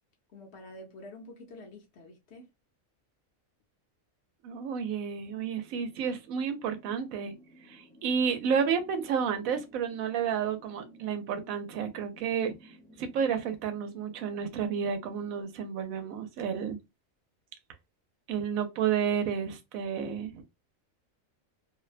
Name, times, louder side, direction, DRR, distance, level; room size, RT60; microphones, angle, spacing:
voice 1, 0.3-2.5, left 1 dB, 60° left, 0.9 m, -48 dB
voice 2, 4.4-7.3 7.6-16.8 18.3-20.4, right 7 dB, 80° right, 1.0 m, -31 dB
sound 1, 5.2-15.4, equal, 5° left, 0.7 m, -56 dB
2.7 x 2.1 x 2.4 m
omnidirectional pair, 1.4 m